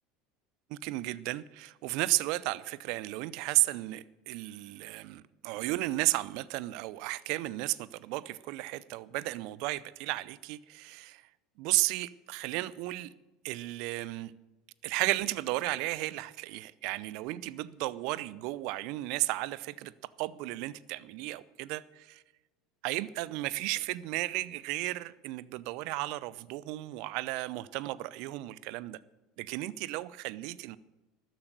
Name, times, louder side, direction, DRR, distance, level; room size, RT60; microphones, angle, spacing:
voice 1, 0.7-11.2 11.6-13.1 13.4-14.3 14.8-19.9 20.2-22.2 22.8-29.0 29.4-30.8, right 19 dB, 60° right, 19 dB, 0.5 m, -34 dB
13.0 x 10.5 x 6.7 m, 1.1 s
figure-of-eight pair, 75°, 0 cm